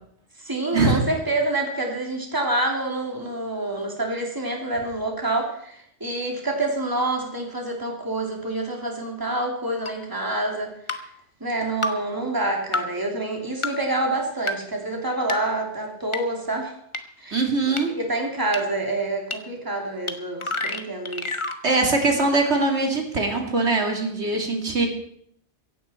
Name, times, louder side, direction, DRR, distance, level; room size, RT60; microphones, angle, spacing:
voice 1, 0.4-11.0 11.4-16.7 17.2-17.5 18.0-21.3, right 2 dB, 20° right, 1 dB, 2.8 m, -27 dB
sound 1, 9.9-10.0 10.9-11.0 11.8-11.9 12.7-12.8 13.6-13.7 14.5-14.6 15.3-15.4 16.1-16.2 16.9-17.0 17.8-17.9 18.5-18.6 19.3-19.4 20.1-20.2 20.4-21.6, left 2 dB, 25° left, 1.2 m, -27 dB
voice 2, 17.3-17.9 21.6-24.9, right 3 dB, 75° right, 2 dB, 2.8 m, -22 dB
16.5 x 15.5 x 4.4 m, 0.68 s
omnidirectional pair, 1.2 m